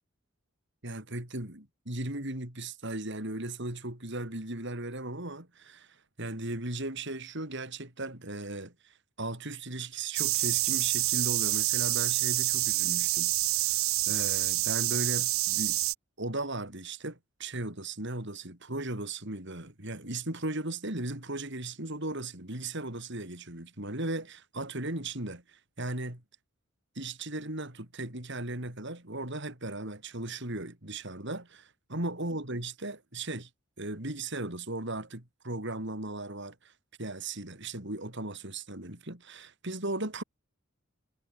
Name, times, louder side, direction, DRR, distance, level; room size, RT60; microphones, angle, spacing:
voice 1, 0.8-5.9 6.2-13.3 13.6-13.7 14.1-15.8 16.2-26.2 26.9-33.5 33.8-36.7 37.0-40.2, right 2 dB, 55° right, 4.8 m, -37 dB
sound 1, 10.1-15.9, right 17 dB, 75° right, 0.9 m, -27 dB
head